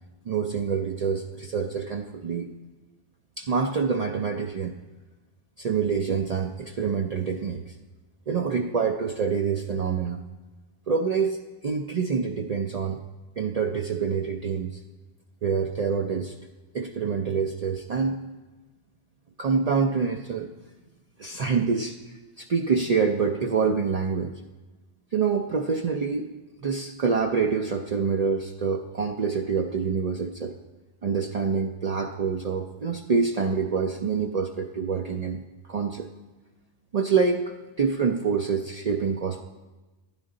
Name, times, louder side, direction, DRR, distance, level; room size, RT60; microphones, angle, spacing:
voice 1, 0.2-2.5 3.4-4.8 5.6-7.7 8.3-10.2 10.9-13.0 13.4-14.8 15.4-16.3 16.7-18.2 19.4-20.5 21.2-24.4 25.1-26.3 26.6-30.6 31.0-35.4 35.7-36.1 36.9-39.4, right 5 dB, 50° right, 2 dB, 0.5 m, -26 dB
11.5 x 9.9 x 3.8 m, 1.2 s
omnidirectional pair, 1.0 m